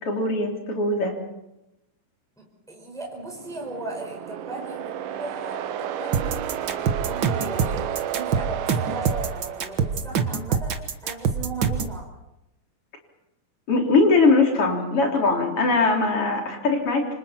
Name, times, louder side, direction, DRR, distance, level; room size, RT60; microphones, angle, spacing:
voice 1, 0.0-1.1 13.7-17.1, left 3 dB, 40° left, 0 dB, 4.4 m, -21 dB
voice 2, 2.4-12.1 15.2-15.3, right 2 dB, ahead, -1 dB, 4.9 m, -37 dB
sound 1, 3.2-10.2, right 11 dB, 80° right, 2.7 m, -32 dB
sound 2, 6.1-12.0, right 6 dB, 60° right, 1.3 m, -25 dB
28.5 x 25.5 x 4.4 m, 0.91 s
omnidirectional pair, 3.9 m